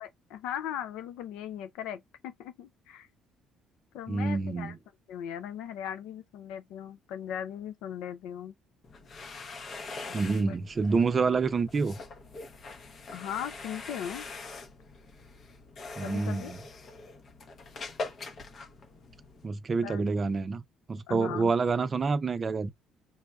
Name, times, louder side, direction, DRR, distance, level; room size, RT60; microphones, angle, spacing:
voice 1, 0.0-3.1 3.9-4.7 5.1-8.5 10.1-10.6 13.1-14.3 16.0-16.5 19.8-20.0 21.1-21.5, left 10 dB, 80° left, 0.5 m, -38 dB
voice 2, 4.1-4.8 10.1-12.0 16.0-16.6 19.4-20.6 20.9-22.7, right 4 dB, 35° right, 0.5 m, -27 dB
sound 1, 8.8-19.5, left 3 dB, 50° left, 0.8 m, -43 dB
5.4 x 2.3 x 2.2 m
supercardioid pair, 75°, 0 cm